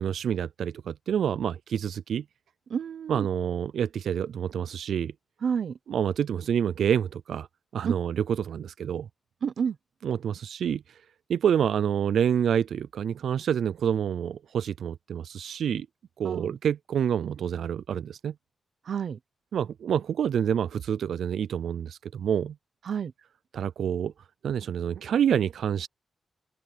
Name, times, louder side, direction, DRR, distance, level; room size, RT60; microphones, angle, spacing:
voice 1, 0.0-2.2 3.1-5.1 5.9-7.5 7.7-9.1 10.0-10.8 11.3-15.9 16.2-18.3 19.5-22.5 23.5-24.1 24.4-25.9, right 8 dB, 90° right, 0.3 m, -27 dB
voice 2, 2.7-3.3 5.4-5.8 7.8-7.9 9.4-9.8 16.2-16.6 18.8-19.2 22.8-23.1, right 7 dB, 65° right, 0.7 m, -29 dB
wide cardioid pair, 140°, 0 cm